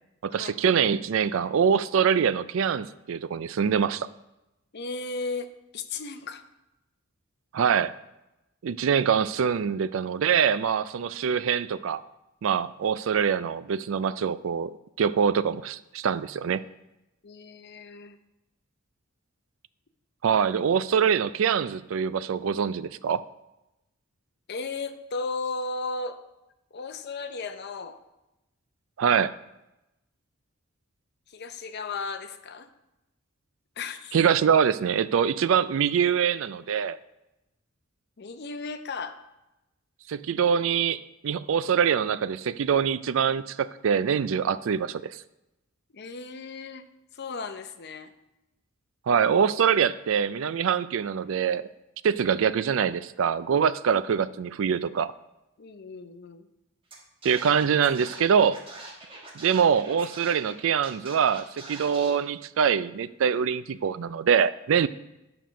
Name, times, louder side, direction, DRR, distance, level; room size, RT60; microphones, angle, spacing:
voice 1, 0.2-4.1 7.5-7.9 8.6-12.0 12.4-16.6 20.2-23.2 29.0-29.3 34.1-37.0 40.1-45.2 49.1-51.7 52.0-55.1 57.2-58.6 59.3-64.9, right 7 dB, 70° right, 16 dB, 0.4 m, -24 dB
voice 2, 4.7-6.4 17.2-18.2 24.5-26.2 26.7-28.0 31.3-32.7 33.8-34.2 38.2-39.2 45.9-48.1 55.6-56.5, left 3 dB, 55° left, 8 dB, 0.7 m, -35 dB
Scratching (performance technique), 56.9-57.0 57.2-60.5 60.8-62.1, right 2 dB, 25° right, 1.5 m, -43 dB
9.3 x 6.0 x 5.0 m, 0.93 s
head